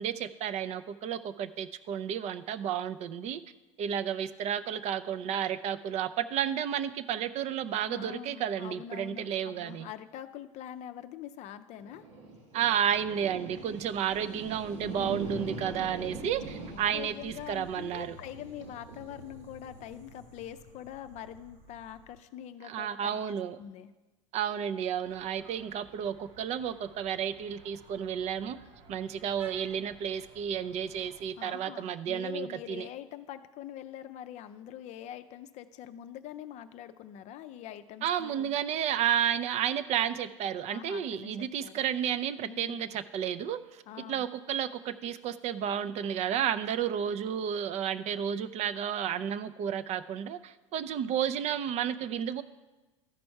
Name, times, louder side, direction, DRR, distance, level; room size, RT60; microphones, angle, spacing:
voice 1, 0.0-3.4 3.8-9.9 12.5-18.2 22.6-23.6 24.3-28.6 28.9-32.8 38.0-43.8 44.1-52.4, right 9 dB, 45° right, 14 dB, 0.5 m, -32 dB
voice 2, 7.9-12.0 16.2-23.9 31.4-38.5 40.7-41.9 42.4-42.8 43.9-44.3, left 10 dB, 45° left, 9 dB, 0.5 m, -44 dB
sound 1, 11.8-22.2, right 2 dB, 85° right, 1.8 m, -43 dB
sound 2, 25.0-31.3, right 4 dB, 60° right, 1.3 m, -55 dB
13.0 x 5.2 x 4.5 m, 1.2 s
hypercardioid pair, 90°, 16 cm